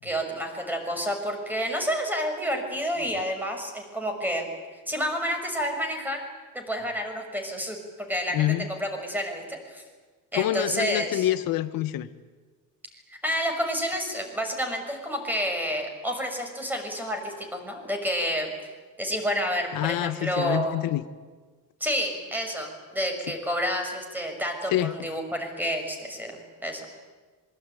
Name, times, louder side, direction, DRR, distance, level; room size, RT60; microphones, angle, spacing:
voice 1, 0.0-4.5 4.9-6.2 6.5-9.8 10.3-11.3 13.1-18.5 19.0-20.8 21.8-26.8, equal, 5° right, 3 dB, 6.0 m, -29 dB
voice 2, 8.3-8.7 10.3-12.1 19.7-21.0 24.7-24.9, left 13 dB, 70° left, 12 dB, 1.3 m, -26 dB
26.5 x 23.0 x 9.2 m, 1.4 s
cardioid pair, 135°, 35 cm